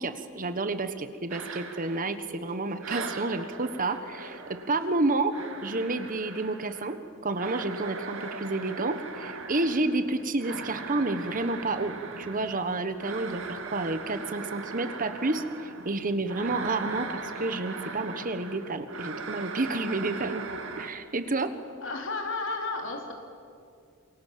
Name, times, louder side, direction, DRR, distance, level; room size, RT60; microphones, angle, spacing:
voice 1, 0.0-5.3 5.6-7.0 7.2-20.4 20.8-21.5, right 2 dB, 40° right, 10 dB, 1.3 m, -30 dB
sound 1, 1.3-2.5 2.8-20.9, right 4 dB, 65° right, 2.2 m, -39 dB
voice 2, 21.8-23.1, left 3 dB, 60° left, 2 dB, 4.0 m, -32 dB
27.5 x 23.5 x 7.6 m, 2.3 s
head